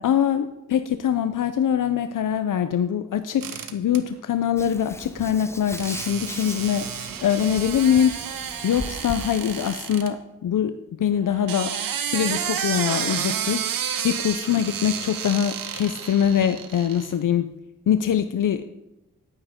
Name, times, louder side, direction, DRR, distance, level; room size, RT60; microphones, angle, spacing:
voice 1, 0.0-6.9 7.2-8.3 8.6-17.5 17.9-18.7, left 9 dB, 70° left, 10 dB, 0.6 m, -23 dB
sound 1, 3.4-4.0 5.8-10.1 11.3-17.1, right 8 dB, 85° right, 0.9 m, -31 dB
Hands, 4.6-9.8, left 1 dB, 10° left, 0.8 m, -38 dB
11.0 x 9.4 x 3.7 m, 0.90 s
cardioid pair, 45°, 33 cm